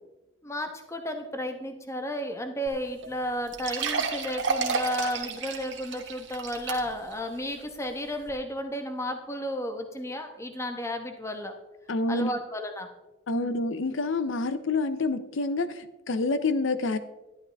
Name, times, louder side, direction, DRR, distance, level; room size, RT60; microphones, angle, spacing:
voice 1, 0.4-11.5 12.1-12.9 13.3-13.6, equal, 15° left, 5 dB, 1.0 m, -33 dB
sound 1, 2.7-2.8 3.0-3.1 3.5-7.1 7.6-7.7 8.3-8.4, right 5 dB, 70° right, 1.4 m, -31 dB
voice 2, 11.9-12.4 13.3-17.0, left 3 dB, 80° left, 11 dB, 0.6 m, -27 dB
11.5 x 11.5 x 3.4 m, 0.99 s
head